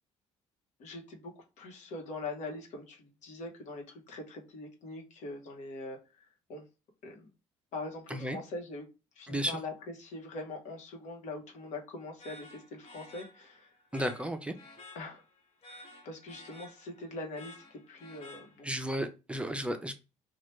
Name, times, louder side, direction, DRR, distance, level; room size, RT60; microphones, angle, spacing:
voice 1, 0.8-6.6 7.0-7.3 7.7-8.8 9.2-13.7 14.9-15.2 15.7-18.7, left 2 dB, 75° left, 2 dB, 1.0 m, -43 dB
voice 2, 9.3-9.6 13.9-14.5 18.6-19.9, equal, 10° right, 7 dB, 0.5 m, -33 dB
sound 1, 12.2-18.9, left 2 dB, 55° left, 1.2 m, -53 dB
3.1 x 2.4 x 3.1 m, 0.29 s
cardioid pair, 90°, 12 cm